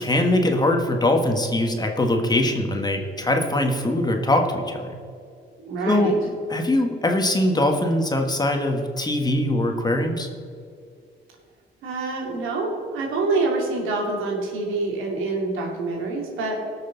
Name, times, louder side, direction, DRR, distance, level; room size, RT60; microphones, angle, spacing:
voice 1, 0.0-4.9 5.8-6.1 6.5-10.3, left 1 dB, 20° left, 3 dB, 1.6 m, -22 dB
voice 2, 5.6-6.1 11.8-16.7, right 3 dB, 90° right, 0 dB, 2.6 m, -26 dB
18.5 x 6.6 x 4.0 m, 2.3 s
cardioid pair, 90°, 20 cm